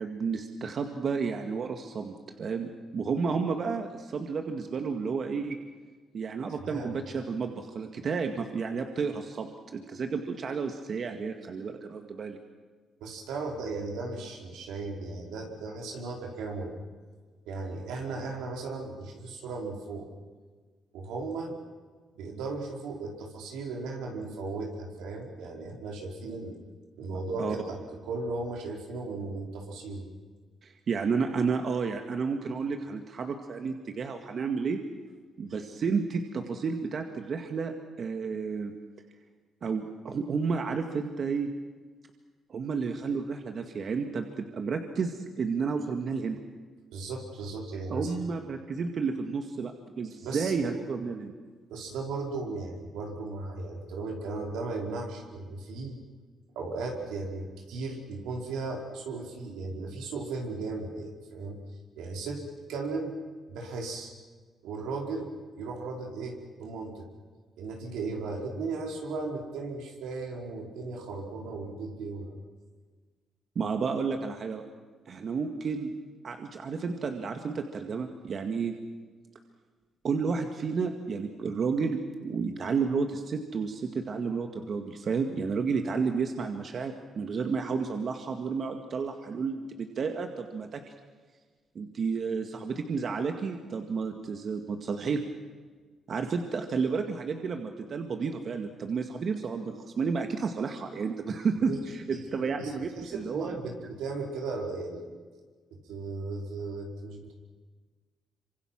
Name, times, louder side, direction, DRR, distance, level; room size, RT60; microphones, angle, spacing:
voice 1, 0.0-5.6 6.1-12.4 27.1-27.6 30.6-34.8 35.4-37.7 38.0-38.7 39.6-41.5 42.5-46.4 47.9-51.3 73.6-74.6 75.1-75.9 76.2-78.7 80.0-90.9 91.8-95.2 96.1-103.5 103.8-103.9, right 5 dB, 50° right, 5 dB, 2.0 m, -31 dB
voice 2, 13.0-16.7 17.4-20.1 20.9-21.5 22.1-26.6 27.0-30.1 46.9-48.1 50.2-50.5 51.7-56.0 56.5-61.6 62.0-63.1 63.5-64.1 64.6-65.3 65.5-67.1 67.6-72.3 101.7-101.8 102.4-105.1 105.7-107.3, right 3 dB, 90° right, 0 dB, 4.9 m, -36 dB
26.5 x 25.5 x 6.1 m, 1.5 s
cardioid pair, 90°, 0 cm